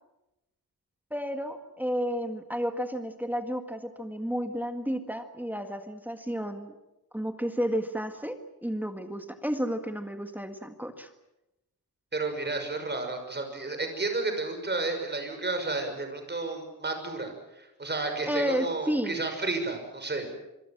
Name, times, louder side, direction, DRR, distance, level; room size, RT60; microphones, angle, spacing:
voice 1, 1.1-6.7 7.1-11.1 18.3-19.2, equal, 5° right, 6 dB, 1.8 m, -32 dB
voice 2, 12.1-20.3, right 3 dB, 30° right, 6 dB, 6.0 m, -32 dB
26.5 x 22.5 x 7.4 m, 0.94 s
wide cardioid pair, 140°, 36 cm